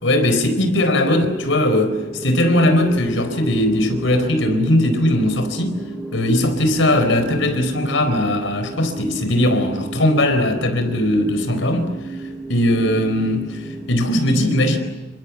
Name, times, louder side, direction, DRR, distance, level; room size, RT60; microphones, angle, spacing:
voice 1, 0.0-5.8 6.1-11.9 12.5-14.8, left 1 dB, 80° left, 4.3 m, -19 dB
sound 1, 1.1-14.0, right 2 dB, 5° left, 3.9 m, -34 dB
29.0 x 26.0 x 7.2 m
head